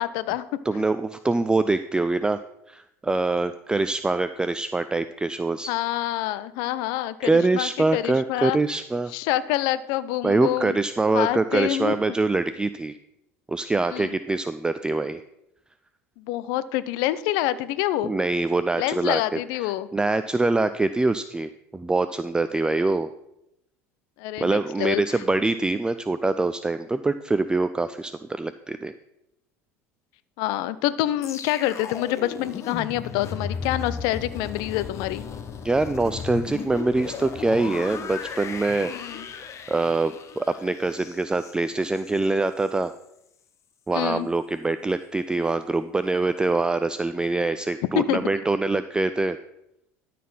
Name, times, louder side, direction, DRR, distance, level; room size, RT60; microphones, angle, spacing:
voice 1, 0.0-0.5 5.7-8.6 9.1-10.8 11.1-12.0 13.9-14.2 16.2-18.1 18.8-19.9 24.2-25.2 30.4-35.2 38.9-39.3 43.9-44.3 48.0-48.2, left 14 dB, 65° left, 15 dB, 0.6 m, -27 dB
voice 2, 0.7-2.4 2.7-5.7 7.2-9.1 10.2-13.0 13.5-15.2 18.0-23.1 24.4-28.9 35.6-38.9 39.7-42.9 43.9-49.4, right 3 dB, 10° right, 12 dB, 0.4 m, -24 dB
sound 1, 31.2-42.3 42.7-42.9, left 6 dB, 40° left, 1.0 m, -36 dB
12.5 x 4.3 x 5.6 m, 0.82 s
hypercardioid pair, 80°, 8 cm